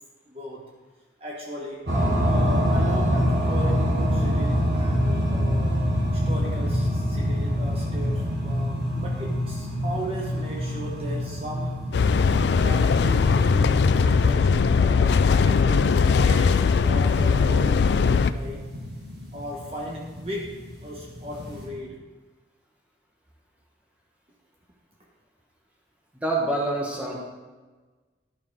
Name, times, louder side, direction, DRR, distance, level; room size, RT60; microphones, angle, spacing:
voice 1, 0.2-0.7 1.2-1.9 2.3-5.9 6.1-11.9 12.6-18.7 19.3-20.6 20.8-22.0, equal, 35° right, -2 dB, 1.1 m, -36 dB
sound 1, 1.9-21.7, equal, 65° right, 2.0 m, -27 dB
sound 2, 11.9-18.3, left 5 dB, 75° left, 0.4 m, -20 dB
voice 2, 26.1-27.2, right 2 dB, 5° right, -2 dB, 1.4 m, -26 dB
11.5 x 5.8 x 4.6 m, 1.3 s
head